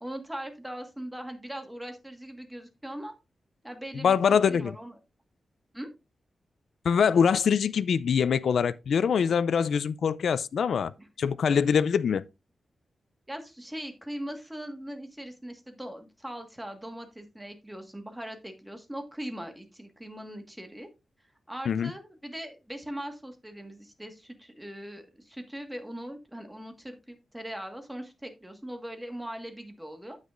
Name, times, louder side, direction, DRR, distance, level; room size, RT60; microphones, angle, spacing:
voice 1, 0.0-3.2 3.6-4.9 5.7-5.9 11.0-11.1 13.3-20.9 21.5-30.2, right 1 dB, 10° right, 1.6 m, -40 dB
voice 2, 3.9-4.7 6.8-10.9 11.2-12.2 21.7-21.9, left 7 dB, 80° left, 0.4 m, -24 dB
9.5 x 8.2 x 2.5 m
wide cardioid pair, 125°, 0 cm